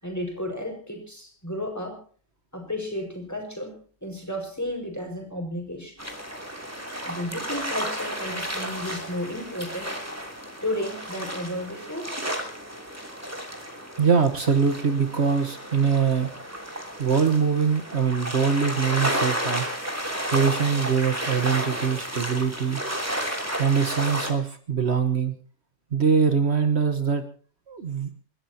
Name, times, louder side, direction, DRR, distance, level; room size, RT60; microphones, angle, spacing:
voice 1, 0.0-2.0 2.5-6.1 7.0-9.9 10.6-12.1, left 1 dB, 15° left, 2 dB, 5.5 m, -33 dB
sound 1, 6.0-24.3, equal, 10° right, 3.1 m, -32 dB
voice 2, 14.0-16.3 17.0-19.7 20.3-22.8 23.6-25.3 25.9-27.2 27.7-28.1, right 6 dB, 60° right, 9 dB, 1.5 m, -23 dB
29.0 x 13.5 x 2.9 m, 0.41 s
omnidirectional pair, 1.3 m